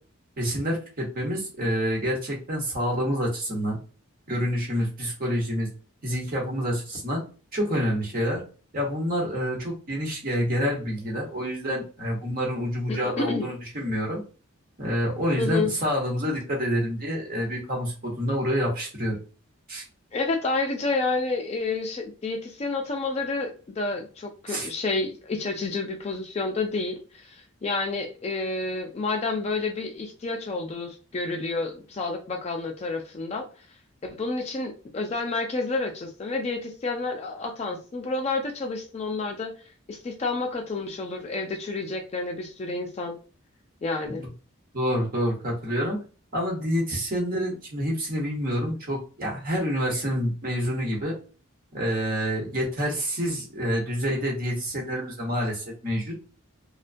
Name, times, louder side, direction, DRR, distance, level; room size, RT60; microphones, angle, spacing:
voice 1, 0.4-3.8 4.3-5.7 6.0-7.2 7.5-8.4 8.7-14.2 14.8-19.2 19.7-19.8 24.5-24.7 44.1-44.2 44.7-46.0 46.3-51.1 51.7-56.1, equal, 40° right, -2 dB, 1.0 m, -27 dB
voice 2, 12.9-13.5 15.4-15.7 20.1-33.5 34.0-39.5 39.9-43.2 43.8-44.3, left 3 dB, 30° left, 3 dB, 0.3 m, -29 dB
2.4 x 2.1 x 2.5 m, 0.37 s
head